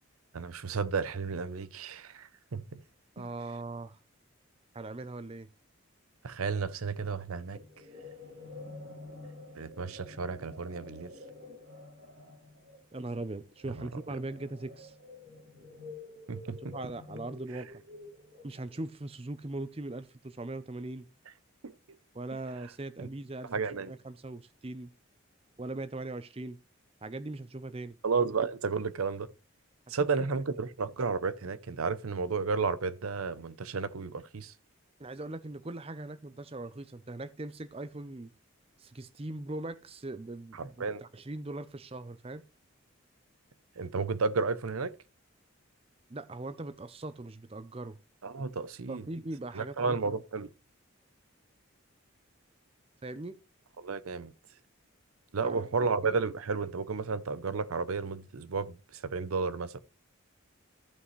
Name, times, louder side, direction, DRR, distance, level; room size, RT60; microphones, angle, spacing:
voice 1, 0.3-2.8 3.2-3.3 6.2-7.6 9.6-11.1 13.7-13.9 16.3-16.8 17.5-17.6 21.6-21.7 23.0-23.1 23.4-23.9 28.0-29.3 29.9-34.5 40.5-41.0 43.8-44.9 48.2-49.1 49.5-50.5 53.8-54.3 55.3-59.8, right 4 dB, 90° right, 0.7 m, -32 dB
voice 2, 3.2-4.0 4.7-5.5 12.9-14.9 16.7-17.7 18.4-21.1 22.1-23.5 23.9-24.9 25.6-26.6 27.0-28.0 35.0-38.3 38.8-40.6 41.0-42.4 46.1-48.0 48.9-50.1 53.0-53.4 55.4-56.2, right 2 dB, 25° right, 0.5 m, -40 dB
sound 1, 7.5-18.9, left 2 dB, 65° right, 4.2 m, -49 dB
14.0 x 5.6 x 3.1 m
head